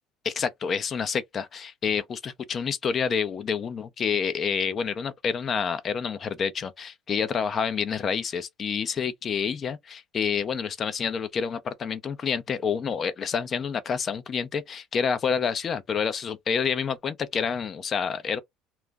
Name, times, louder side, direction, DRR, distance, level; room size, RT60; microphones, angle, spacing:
voice 1, 0.2-18.4, left 6 dB, 40° left, 0.5 m, -28 dB
2.4 x 2.0 x 3.4 m
cardioid pair, 110°, 0 cm